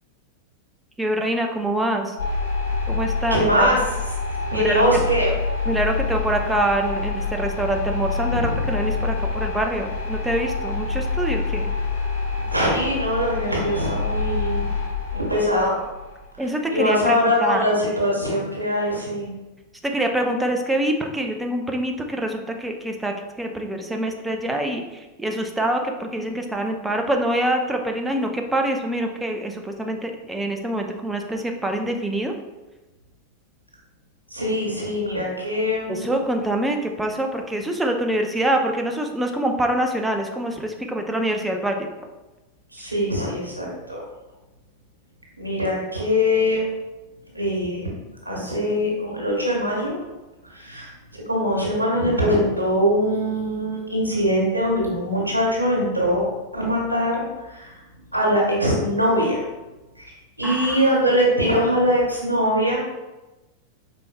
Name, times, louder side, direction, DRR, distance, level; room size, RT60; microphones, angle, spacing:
voice 1, 1.0-2.2 2.9-3.8 4.5-4.8 5.7-11.7 16.4-17.6 19.8-32.3 35.9-41.9 60.4-60.8, right 1 dB, 5° right, 3 dB, 0.6 m, -25 dB
sound 1, 2.2-16.3, left 4 dB, 70° left, 1.3 m, -27 dB
voice 2, 3.3-3.8 4.4-5.3 8.3-8.6 12.5-14.7 15.1-15.8 16.7-19.3 34.3-36.2 42.7-44.0 45.4-46.6 47.3-47.9 48.2-50.0 50.4-56.3 56.5-57.8 58.1-59.4 60.0-60.1 60.4-62.8, equal, 85° right, -3 dB, 1.3 m, -22 dB
5.3 x 4.2 x 2.3 m, 1.1 s
figure-of-eight pair, 90°, 0 cm